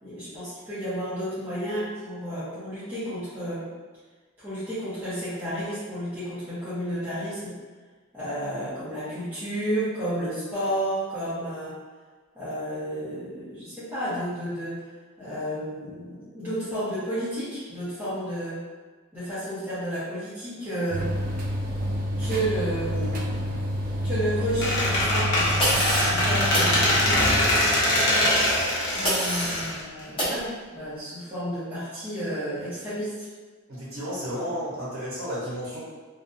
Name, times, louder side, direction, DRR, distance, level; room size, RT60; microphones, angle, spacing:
voice 1, 0.0-3.7 4.4-7.6 8.1-11.8 12.3-14.9 15.2-18.6 19.1-21.1 22.0-23.4 24.0-27.0 28.9-33.3, equal, 10° right, -15 dB, 0.8 m, -31 dB
sound 1, 20.9-27.4, equal, 45° right, 0.4 m, -29 dB
Squeak, 24.6-30.4, left 1 dB, 55° left, 0.7 m, -23 dB
sound 2, 25.6-26.2 26.5-26.7 29.0-29.7 30.2-30.4, equal, 25° left, 0.9 m, -26 dB
voice 2, 33.7-35.8, equal, 70° right, -8 dB, 0.7 m, -32 dB
2.5 x 2.2 x 2.6 m, 1.4 s
head